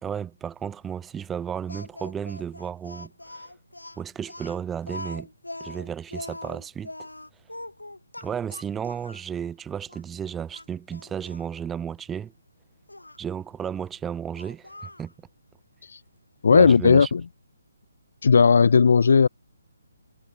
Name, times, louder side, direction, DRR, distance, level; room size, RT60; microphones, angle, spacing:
voice 1, 0.0-3.1 4.0-5.3 5.6-6.9 8.2-12.3 13.2-15.1 16.5-17.1, right 8 dB, 10° right, 0.4 m, -33 dB
Speech, 1.7-9.3 9.9-10.0 10.5-11.5 12.9-13.2 14.3-15.1, left 1 dB, 80° left, 1.9 m, -41 dB
voice 2, 16.4-17.2 18.2-19.3, left 5 dB, 55° left, 0.4 m, -16 dB
figure-of-eight pair, 140°, 0 cm